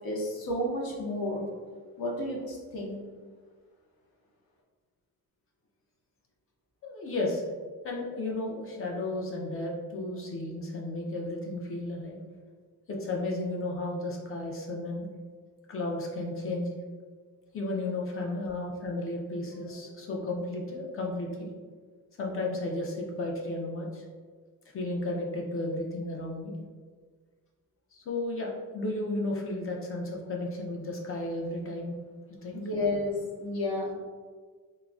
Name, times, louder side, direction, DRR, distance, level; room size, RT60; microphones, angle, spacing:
voice 1, 0.0-1.4 2.0-3.0 32.5-33.9, left 1 dB, 80° left, -3 dB, 0.9 m, -31 dB
voice 2, 6.8-7.4 7.8-12.2 12.9-15.1 15.7-16.7 17.5-21.5 22.2-24.0 24.7-26.6 27.9-32.0 32.4-32.6, left 2 dB, 40° left, -1 dB, 0.5 m, -33 dB
3.8 x 2.1 x 2.3 m, 1.5 s
wide cardioid pair, 145°, 35 cm